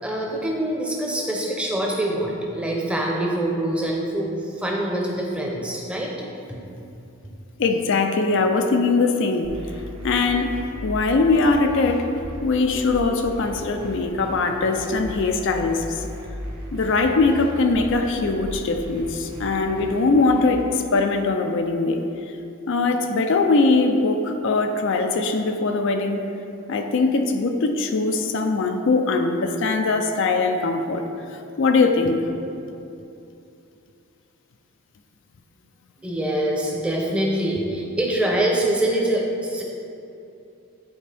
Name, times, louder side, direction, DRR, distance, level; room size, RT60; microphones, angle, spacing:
voice 1, 0.0-6.1 6.5-6.6 36.0-39.6, right 1 dB, 5° right, -2 dB, 0.7 m, -24 dB
voice 2, 7.6-9.5 10.0-12.1 12.4-16.0 16.7-22.0 22.7-26.2 26.7-31.1 31.6-32.2, left 3 dB, 55° left, 5 dB, 0.4 m, -21 dB
sound 1, 9.4-20.5, equal, 80° right, 1.3 m, -37 dB
10.0 x 4.4 x 3.4 m, 2.7 s
head